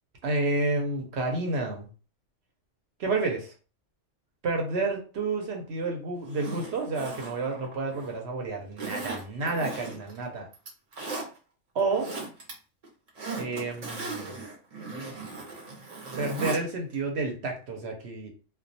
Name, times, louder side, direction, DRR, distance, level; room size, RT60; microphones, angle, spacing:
voice 1, 0.2-1.9 3.0-3.5 4.4-10.5 11.7-12.1 13.4-14.4 16.2-18.3, right 3 dB, 65° right, 1 dB, 0.9 m, -30 dB
Zipper (clothing), 6.3-8.2 8.8-10.2 10.5-11.3 11.8-12.5 12.8-16.6 16.9-17.0, right 3 dB, 40° right, 0.7 m, -37 dB
2.3 x 2.2 x 2.6 m, 0.35 s
omnidirectional pair, 1.3 m